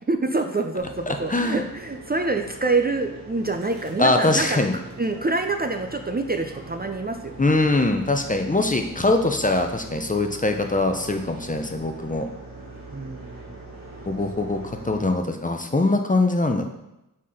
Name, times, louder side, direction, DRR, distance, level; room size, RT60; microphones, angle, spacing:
voice 1, 0.1-4.6 5.0-7.4 12.9-13.5, right 3 dB, 30° right, 6 dB, 0.5 m, -26 dB
sound 1, 0.8-15.1, right 2 dB, 85° right, 1.7 m, -42 dB
voice 2, 1.3-1.6 4.0-4.7 7.4-12.3 14.1-16.7, left 2 dB, 25° left, 5 dB, 0.6 m, -22 dB
5.7 x 4.3 x 4.9 m, 0.90 s
wide cardioid pair, 70°, 34 cm